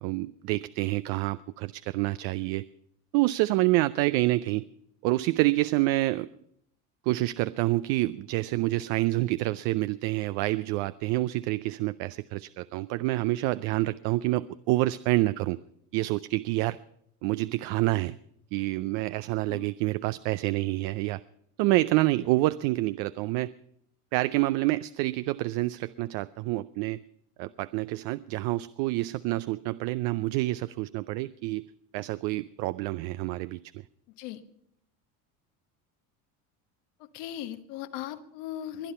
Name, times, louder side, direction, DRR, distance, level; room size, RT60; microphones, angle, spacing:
voice 1, 0.0-2.6 3.1-4.7 5.0-6.3 7.1-15.6 15.9-16.8 17.2-18.2 18.5-21.2 21.6-23.5 24.1-27.0 27.4-33.8, right 18 dB, 70° right, 15 dB, 0.6 m, -27 dB
voice 2, 37.0-38.9, left 11 dB, 75° left, 10 dB, 1.4 m, -38 dB
21.5 x 10.5 x 5.6 m, 0.72 s
supercardioid pair, 95°, 44 cm